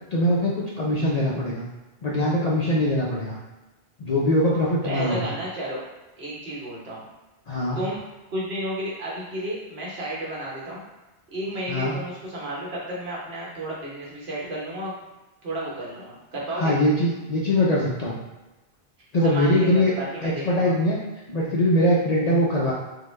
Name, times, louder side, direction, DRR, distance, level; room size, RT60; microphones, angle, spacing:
voice 1, 0.1-1.6 2.0-3.4 4.0-5.2 7.5-7.8 11.7-11.9 16.5-18.2 19.1-19.9 20.2-21.0 21.3-22.7, left 1 dB, 55° left, -5 dB, 0.5 m, -22 dB
voice 2, 4.8-5.8 6.2-7.0 7.8-8.0 8.3-10.8 11.3-15.0 15.4-16.8 19.2-20.8, right 1 dB, 70° right, -5 dB, 1.2 m, -32 dB
3.6 x 2.1 x 3.1 m, 1.1 s
omnidirectional pair, 1.1 m